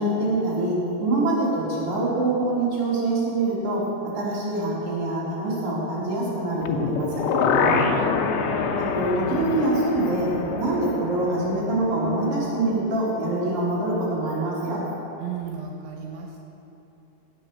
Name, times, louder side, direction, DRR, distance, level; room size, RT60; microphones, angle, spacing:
voice 1, 0.0-3.9 4.1-7.1 8.8-10.3 10.6-14.8, right 2 dB, 35° right, -7 dB, 3.4 m, -25 dB
sound 1, 6.6-12.6 13.0-13.1, left 5 dB, 80° left, 2.9 m, -26 dB
voice 2, 7.5-8.3 15.2-16.4, right 5 dB, 80° right, 0 dB, 3.2 m, -35 dB
16.5 x 6.7 x 6.6 m, 2.9 s
omnidirectional pair, 5.2 m